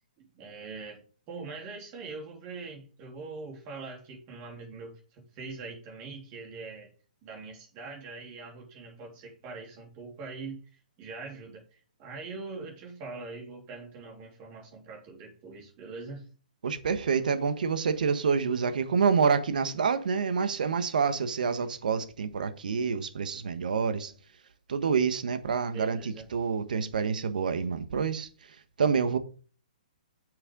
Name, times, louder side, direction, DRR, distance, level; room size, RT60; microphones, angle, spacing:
voice 1, 0.2-6.9 7.2-16.3 25.7-26.3, right 3 dB, 25° right, 3.4 m, -43 dB
voice 2, 16.6-24.1 24.7-29.2, right 6 dB, 70° right, 1.3 m, -27 dB
8.5 x 6.7 x 3.7 m
hypercardioid pair, 160°, 5 cm